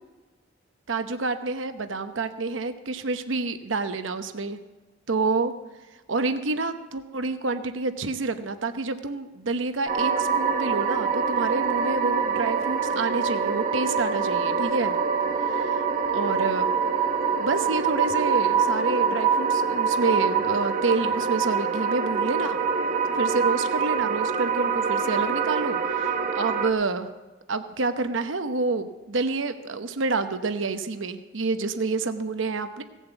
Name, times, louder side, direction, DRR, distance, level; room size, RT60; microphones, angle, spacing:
voice 1, 0.9-4.6 5.1-5.5 6.1-14.9 15.5-15.8 16.1-16.7 17.4-22.6 23.1-27.1 27.5-32.8, right 3 dB, 75° right, 9 dB, 0.9 m, -28 dB
sound 1, 9.9-26.7, right 6 dB, 45° right, 1.1 m, -25 dB
17.0 x 7.3 x 8.1 m, 1.2 s
head